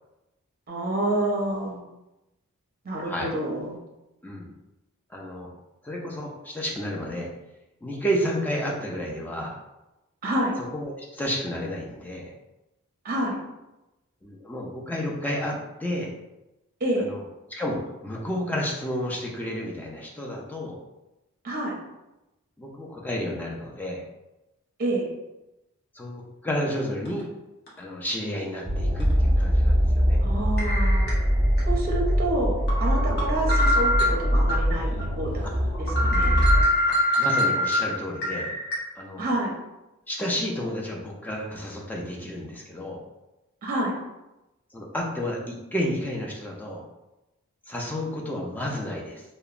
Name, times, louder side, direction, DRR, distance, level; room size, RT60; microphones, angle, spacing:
voice 1, 0.7-1.8 2.8-3.8 10.2-10.5 13.0-13.4 16.8-17.1 21.4-21.8 24.8-25.1 30.2-31.1 31.7-35.5 35.8-36.4 39.2-39.5 43.6-43.9, right 1 dB, 45° right, -2 dB, 0.6 m, -28 dB
voice 2, 5.1-5.5 5.8-7.3 7.8-9.6 10.6-12.3 14.2-16.1 17.0-17.2 17.5-20.8 22.6-24.0 25.9-27.3 27.8-30.2 33.1-33.2 35.4-35.5 36.9-38.5 39.0-39.2 40.1-43.0 44.7-46.8 47.7-49.2, equal, 10° left, -2 dB, 0.4 m, -31 dB
sound 1, 27.1-27.2 27.7-27.8 29.0-29.1 30.6-31.6 32.1-32.2 32.7-34.6 35.0-35.1 35.5-35.6 35.9-38.8, left 1 dB, 50° left, 0.8 m, -25 dB
sound 2, 28.6-36.6, equal, 20° right, 0.8 m, -23 dB
2.9 x 2.1 x 2.4 m, 0.97 s
head